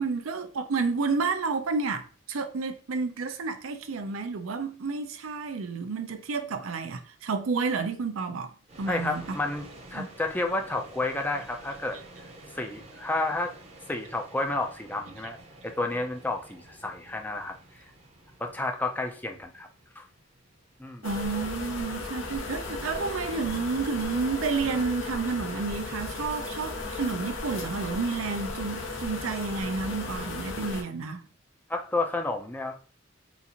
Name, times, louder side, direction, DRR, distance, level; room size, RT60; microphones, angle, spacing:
voice 1, 0.0-8.5 8.8-9.4 9.9-10.1 21.0-31.2, right 4 dB, 90° right, 0.5 m, -30 dB
sound 1, 8.7-25.7, right 1 dB, 35° right, 0.7 m, -51 dB
voice 2, 8.9-9.6 9.9-12.0 12.5-13.5 13.9-15.4 15.6-17.5 18.4-19.7 20.0-20.1 20.8-21.1 31.7-32.8, left 2 dB, 10° left, 0.4 m, -30 dB
sound 2, 21.0-30.8, left 3 dB, 70° left, 0.9 m, -35 dB
3.9 x 2.5 x 2.8 m
head